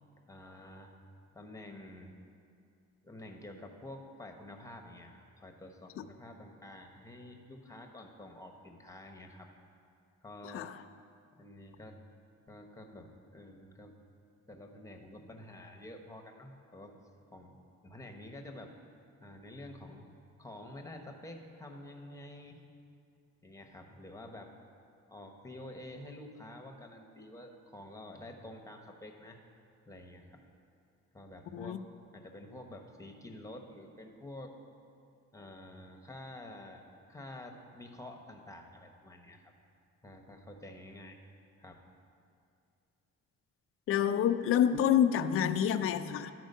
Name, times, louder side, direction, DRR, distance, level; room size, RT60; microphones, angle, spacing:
voice 1, 0.3-1.0 1.3-2.1 3.0-9.5 10.2-10.7 11.3-12.0 12.5-13.9 14.5-17.0 17.3-18.8 19.2-20.1 20.4-22.6 23.4-24.5 25.1-29.4 29.9-30.4 31.1-31.8 32.1-34.6 35.3-36.8 37.1-39.5 40.0-41.2 41.6-41.8, left 1 dB, 10° left, 3 dB, 1.0 m, -49 dB
voice 2, 43.9-46.3, left 9 dB, 45° left, 9 dB, 0.4 m, -27 dB
12.0 x 4.5 x 5.5 m, 2.4 s
cardioid pair, 90°, 30 cm